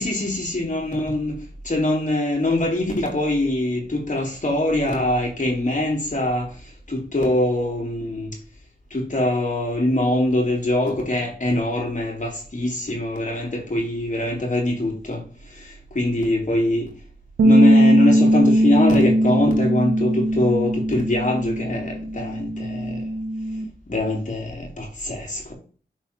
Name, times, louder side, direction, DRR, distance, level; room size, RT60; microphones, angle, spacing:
voice 1, 0.0-8.4 8.9-16.9 17.4-23.0 23.9-25.5, left 1 dB, 45° left, 3.2 m, -23 dB
sound 1, 17.4-23.6, equal, 75° right, 0.9 m, -19 dB
6.5 x 4.1 x 4.3 m
cardioid pair, 40°, 17 cm